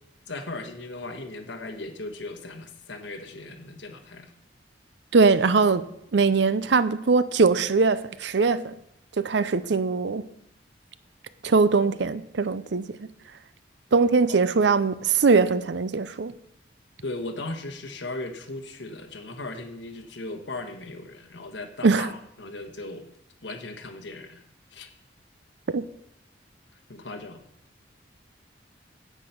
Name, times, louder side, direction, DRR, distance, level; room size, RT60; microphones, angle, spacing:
voice 1, 0.3-4.3 14.3-14.4 17.0-23.1 23.4-24.4 24.7-24.9 26.9-27.4, left 2 dB, 75° left, 1.4 m, -37 dB
voice 2, 5.1-5.9 6.1-8.7 9.2-10.2 11.4-12.8 13.9-16.3 21.8-22.1 25.7-25.8, right 4 dB, 70° right, 0.5 m, -21 dB
9.8 x 8.3 x 5.9 m
head